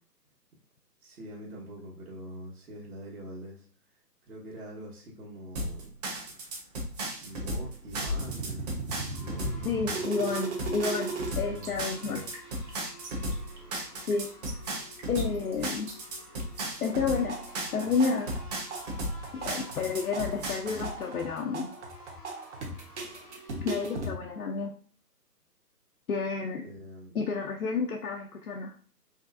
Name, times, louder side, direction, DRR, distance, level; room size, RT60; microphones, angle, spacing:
voice 1, 1.0-3.7 4.3-5.9 7.2-8.7 9.1-10.3 11.5-12.3 26.6-27.1, equal, 60° right, -8 dB, 1.7 m, -44 dB
sound 1, 5.6-20.9, right 1 dB, 25° right, 1.1 m, -35 dB
sound 2, 8.0-11.3 11.6-11.7 12.0-12.7 13.0-14.5 15.0-15.5 15.9-16.6 16.9-24.1, right 2 dB, 45° right, 1.2 m, -38 dB
sound 3, 9.1-24.1, left 2 dB, 25° left, 0.6 m, -52 dB
voice 2, 9.6-12.2 14.1-14.3 15.1-15.9 16.8-17.4 17.7-18.4 19.3-21.7 23.6-24.7 26.1-26.7 27.1-28.7, left 5 dB, 60° left, 2 dB, 0.7 m, -30 dB
5.0 x 3.2 x 2.6 m, 0.43 s
figure-of-eight pair, 145°, 49 cm